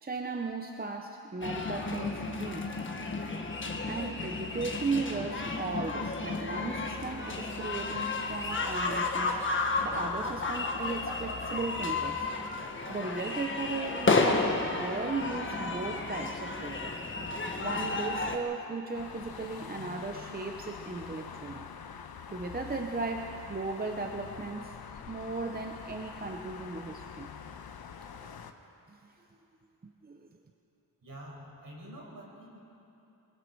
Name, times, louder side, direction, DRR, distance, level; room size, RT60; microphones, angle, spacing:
voice 1, 0.0-2.7 3.9-9.4 9.8-12.3 12.9-17.0 17.6-21.7 22.3-27.3 28.2-28.4 28.9-29.3 29.8-30.3, right 3 dB, 25° right, 3 dB, 0.7 m, -36 dB
sound 1, 1.4-18.4, left 3 dB, 30° left, 1.4 m, -32 dB
sound 2, 18.9-28.5, left 7 dB, 65° left, 1.0 m, -45 dB
voice 2, 31.0-32.6, right 1 dB, 55° right, -2 dB, 5.3 m, -47 dB
27.0 x 21.0 x 4.6 m, 2.9 s
wide cardioid pair, 180°, 40 cm